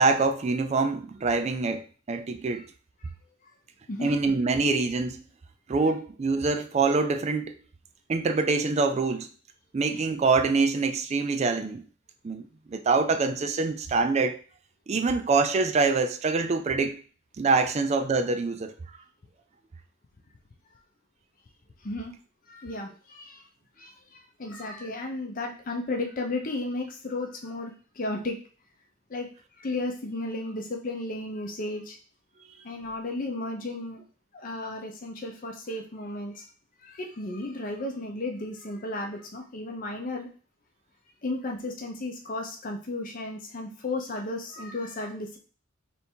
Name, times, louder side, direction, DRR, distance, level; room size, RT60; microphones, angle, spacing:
voice 1, 0.0-1.8 2.1-2.6 4.0-5.2 5.7-7.5 8.1-9.3 9.7-11.8 12.2-12.4 12.7-14.4 14.9-17.0 17.4-18.7, right 4 dB, 35° right, 0.3 m, -25 dB
voice 2, 22.5-23.4 23.8-28.4 29.1-29.3 29.6-32.0 32.6-34.0 34.3-36.5 36.8-40.3 41.2-45.4, left 2 dB, 45° left, 0.6 m, -34 dB
3.4 x 2.6 x 4.4 m
head